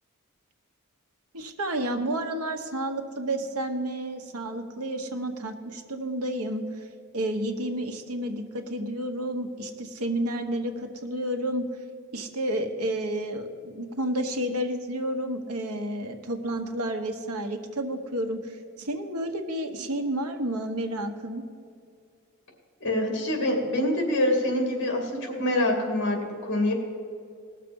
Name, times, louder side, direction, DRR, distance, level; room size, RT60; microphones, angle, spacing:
voice 1, 1.3-6.9 7.1-11.7 12.1-21.4, right 1 dB, 85° right, 6 dB, 1.1 m, -31 dB
voice 2, 22.8-26.7, left 1 dB, 55° left, 2 dB, 2.6 m, -25 dB
18.5 x 6.7 x 5.4 m, 2.4 s
head